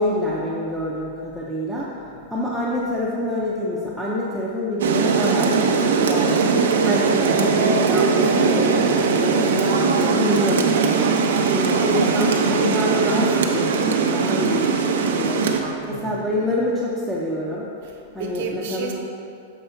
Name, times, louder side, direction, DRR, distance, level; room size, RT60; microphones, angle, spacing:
voice 1, 0.0-2.0 2.3-6.5 6.8-11.1 11.5-15.5 16.0-17.7 18.1-18.9, left 1 dB, ahead, -8 dB, 0.5 m, -26 dB
Rain, 4.8-15.6, right 5 dB, 80° right, 0.6 m, -20 dB
voice 2, 15.6-16.2 17.8-18.9, right 5 dB, 50° right, 2 dB, 0.8 m, -34 dB
6.9 x 4.7 x 4.4 m, 2.5 s
supercardioid pair, 175°, 0 cm